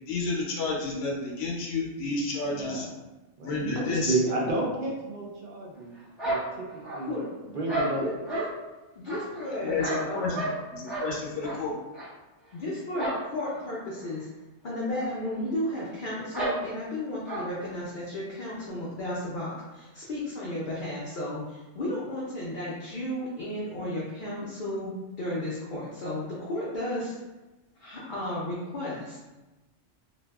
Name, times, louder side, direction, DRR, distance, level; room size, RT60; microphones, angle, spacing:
voice 1, 0.1-2.9 3.4-4.2 9.5-10.4 10.7-11.8, left 3 dB, 80° left, -2 dB, 0.9 m, -30 dB
voice 2, 2.5-2.9 3.4-5.9 6.2-6.7 6.9-7.2 7.5-8.1 9.1-9.2, right 2 dB, 60° right, -2 dB, 0.6 m, -31 dB
voice 3, 3.7-4.4 7.1-7.2 7.5-7.6 7.9-8.4 8.9-10.5 12.5-14.3 14.6-27.2 27.8-29.2, left 1 dB, 55° left, -6 dB, 0.6 m, -33 dB
sound 1, 6.2-7.2 7.7-8.5 9.1-10.6 10.9-11.1 11.4-11.6 11.9-12.1 12.9-13.2 13.5-13.6 14.0-14.1 14.9-15.1 15.3-15.4 16.3-16.6 17.2-17.5, right 1 dB, ahead, 0.9 m, -32 dB
2.6 x 2.2 x 2.2 m, 1.1 s
omnidirectional pair, 1.2 m